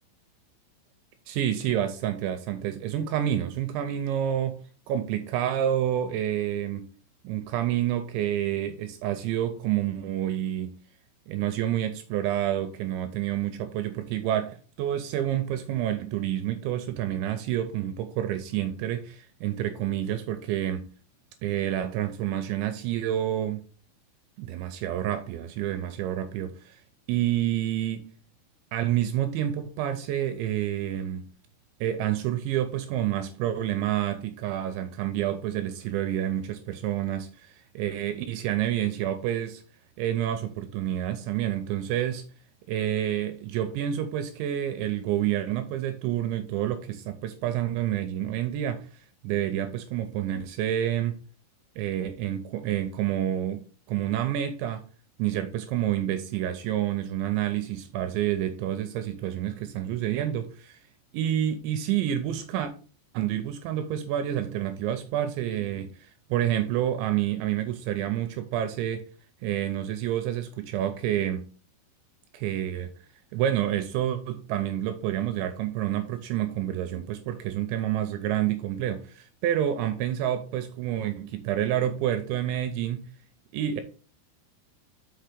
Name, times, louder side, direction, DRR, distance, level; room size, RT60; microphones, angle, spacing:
voice 1, 1.3-4.6 4.9-6.9 7.2-10.7 11.3-20.9 21.4-23.7 24.4-26.8 27.1-28.1 28.7-31.3 31.8-39.6 40.0-42.3 42.7-48.9 49.2-51.2 51.8-54.8 55.2-60.8 61.1-62.7 63.1-69.0 69.4-71.5 72.3-72.9 73.3-83.1 83.5-83.8, right 11 dB, 80° right, 2.7 m, -28 dB
6.1 x 5.7 x 5.1 m
omnidirectional pair, 5.8 m